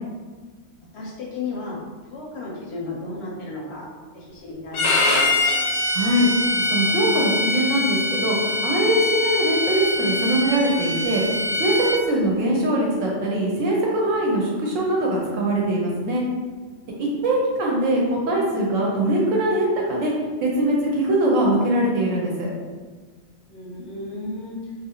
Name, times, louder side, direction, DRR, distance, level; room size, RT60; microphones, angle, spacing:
voice 1, 0.9-1.8 2.1-3.9 4.1-5.2 16.9-17.4 23.5-24.6, left 3 dB, 65° left, -4 dB, 0.7 m, -34 dB
Bowed string instrument, 4.7-12.0, left 2 dB, 85° left, 1.0 m, -23 dB
voice 2, 5.9-6.3 6.6-11.2 11.6-16.2 17.0-20.1 20.4-22.5, right 1 dB, 70° right, -2 dB, 0.9 m, -22 dB
2.7 x 2.4 x 2.8 m, 1.4 s
omnidirectional pair, 1.4 m